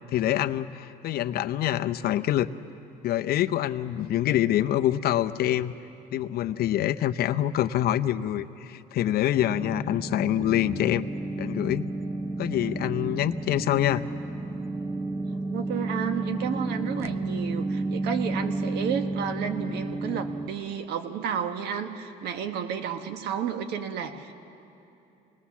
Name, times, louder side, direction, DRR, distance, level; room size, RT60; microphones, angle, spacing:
voice 1, 0.0-2.5 3.0-5.7 6.1-11.1 11.4-11.9 12.4-14.0, left 12 dB, 65° left, 10 dB, 0.7 m, -26 dB
sound 1, 9.4-20.5, right 2 dB, 15° right, 0.9 m, -32 dB
voice 2, 15.5-24.3, right 8 dB, 80° right, 7 dB, 1.4 m, -32 dB
26.0 x 20.0 x 7.2 m, 2.9 s
cardioid pair, 110°, 17 cm